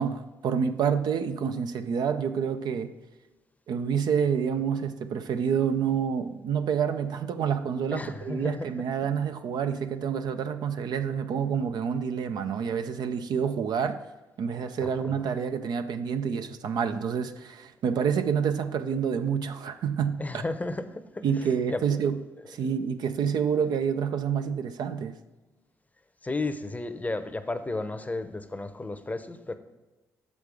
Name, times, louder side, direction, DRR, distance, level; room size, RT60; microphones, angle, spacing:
voice 1, 0.0-2.9 3.7-14.0 14.4-20.4 21.2-22.2 22.5-25.2, right 7 dB, 65° right, 0.5 m, -28 dB
voice 2, 7.9-8.7 14.8-15.2 20.2-22.0 22.4-22.7 26.2-29.6, left 2 dB, 20° left, 0.7 m, -34 dB
6.5 x 5.2 x 4.8 m
hypercardioid pair, 50°, 8 cm